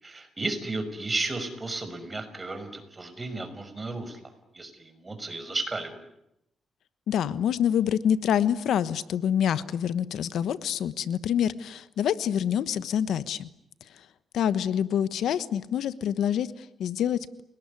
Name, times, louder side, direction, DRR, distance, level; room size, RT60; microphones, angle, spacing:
voice 1, 0.0-6.0, right 2 dB, 25° right, 8 dB, 5.8 m, -34 dB
voice 2, 7.1-13.5 14.3-17.4, left 9 dB, 80° left, 15 dB, 1.1 m, -26 dB
30.0 x 19.0 x 9.8 m, 0.83 s
cardioid pair, 90°, 0 cm